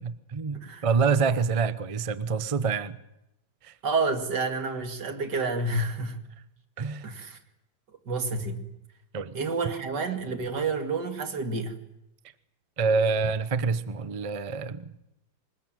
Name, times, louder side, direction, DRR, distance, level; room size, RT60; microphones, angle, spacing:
voice 1, 0.0-3.0 3.6-3.7 6.8-7.1 9.1-9.4 12.8-14.9, right 5 dB, 30° right, 14 dB, 0.6 m, -26 dB
voice 2, 0.5-0.9 3.8-6.2 7.0-7.4 8.1-8.7 9.3-11.8, right 3 dB, 60° right, 6 dB, 3.0 m, -29 dB
25.5 x 20.5 x 9.2 m, 0.87 s
omnidirectional pair, 2.1 m